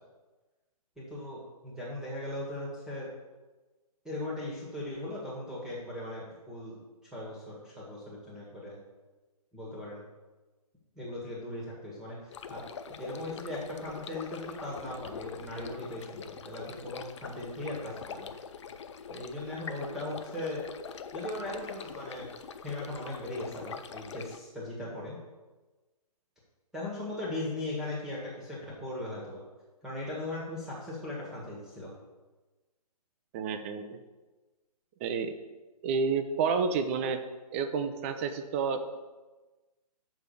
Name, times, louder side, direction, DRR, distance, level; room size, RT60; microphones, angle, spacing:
voice 1, 1.0-3.1 4.0-6.7 7.1-8.8 9.5-10.0 10.9-12.6 13.0-18.3 19.1-20.6 21.1-22.3 22.6-25.2 26.7-29.4 29.8-31.9, left 1 dB, 5° right, -5 dB, 1.5 m, -38 dB
sound 1, 12.3-24.4, left 6 dB, 45° left, 0.5 m, -43 dB
voice 2, 33.3-34.0 35.0-35.4 35.8-37.2 37.5-39.0, right 5 dB, 20° right, 8 dB, 0.5 m, -30 dB
6.2 x 5.0 x 6.8 m, 1.2 s
figure-of-eight pair, 135°, 20 cm